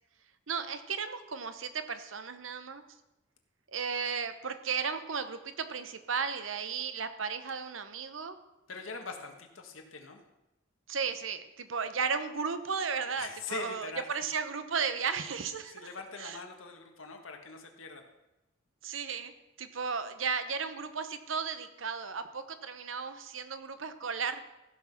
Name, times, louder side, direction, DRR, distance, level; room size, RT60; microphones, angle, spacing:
voice 1, 0.5-2.8 3.7-8.4 10.9-15.9 16.2-16.4 18.8-19.3 19.6-24.5, right 6 dB, 75° right, 10 dB, 0.9 m, -35 dB
voice 2, 8.7-10.2 13.2-14.0 15.7-18.0, left 4 dB, 90° left, 4 dB, 1.6 m, -42 dB
15.0 x 6.0 x 6.0 m, 0.98 s
head